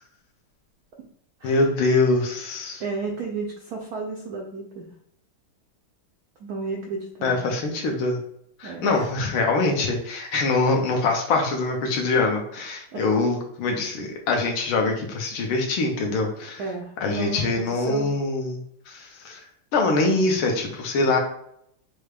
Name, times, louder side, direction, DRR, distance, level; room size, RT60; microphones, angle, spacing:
voice 1, 1.4-2.8 7.2-8.2 8.6-16.6 17.0-18.6 18.9-19.4 19.7-21.2, left 3 dB, 75° left, 1 dB, 1.6 m, -24 dB
voice 2, 2.8-4.9 6.4-7.4 8.6-9.1 12.9-13.0 16.6-18.1, right 4 dB, 75° right, 0 dB, 0.8 m, -32 dB
6.1 x 2.2 x 3.3 m, 0.71 s
omnidirectional pair, 2.3 m